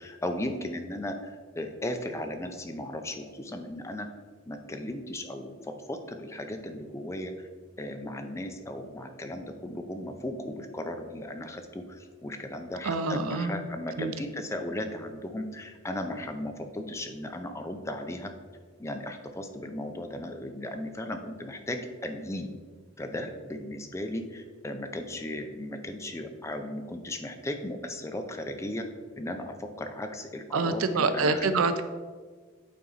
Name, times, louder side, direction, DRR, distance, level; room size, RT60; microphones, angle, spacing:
voice 1, 0.0-4.1 4.5-7.5 7.8-18.3 18.8-22.5 23.0-28.9 29.2-31.5, left 1 dB, 15° left, 5 dB, 0.5 m, -36 dB
voice 2, 12.8-13.6 14.0-14.1 30.5-31.8, right 3 dB, 85° right, 10 dB, 0.5 m, -26 dB
8.7 x 4.0 x 4.0 m, 1.5 s
head